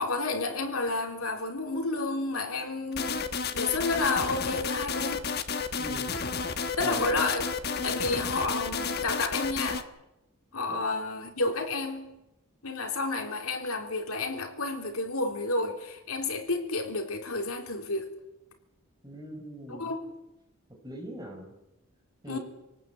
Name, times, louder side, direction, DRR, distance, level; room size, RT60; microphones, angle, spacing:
voice 1, 0.0-3.3 3.5-5.3 6.8-7.5 7.8-9.9 10.5-12.1 12.6-18.1 19.7-20.1 22.3-22.4, left 3 dB, 80° left, 4 dB, 3.5 m, -30 dB
sound 1, 2.9-9.8, left 5 dB, 45° left, 1.3 m, -31 dB
voice 2, 5.8-6.2 6.8-7.2 8.0-8.2 10.7-10.8 19.0-19.9 20.8-21.5 22.2-22.4, right 1 dB, 15° right, 2 dB, 4.6 m, -40 dB
26.0 x 18.5 x 7.8 m, 0.95 s
head